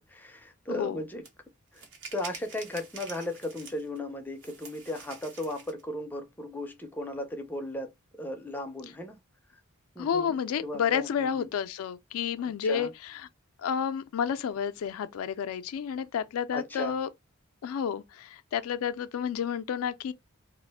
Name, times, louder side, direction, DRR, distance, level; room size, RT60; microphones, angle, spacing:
voice 1, 0.1-1.3 1.7-1.8 2.1-7.9 8.2-9.2 10.0-11.5 12.4-12.9 16.5-16.9, left 1 dB, 10° left, 0.4 m, -36 dB
voice 2, 0.7-1.0 10.0-13.3 13.6-17.1 17.6-20.1, left 7 dB, 90° left, 0.3 m, -30 dB
sound 1, 1.2-1.3 1.7-4.0 4.4-5.8, right 4 dB, 60° right, 0.8 m, -46 dB
2.4 x 2.1 x 3.3 m
head